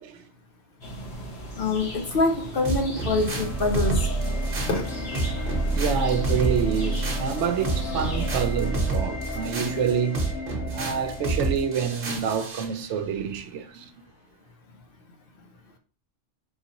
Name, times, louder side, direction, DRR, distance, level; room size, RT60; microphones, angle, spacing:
sound 1, 0.8-8.3, equal, 35° left, 1.0 m, -38 dB
voice 1, 1.6-4.1 4.7-4.8, left 3 dB, 55° left, 0.7 m, -25 dB
sound 2, 2.6-12.7, right 3 dB, 50° right, 1.1 m, -30 dB
sound 3, 3.1-12.2, right 1 dB, 85° left, 1.3 m, -31 dB
voice 2, 5.8-10.4 10.7-13.9, right 7 dB, 70° right, 0.9 m, -27 dB
4.0 x 3.7 x 2.8 m
omnidirectional pair, 1.3 m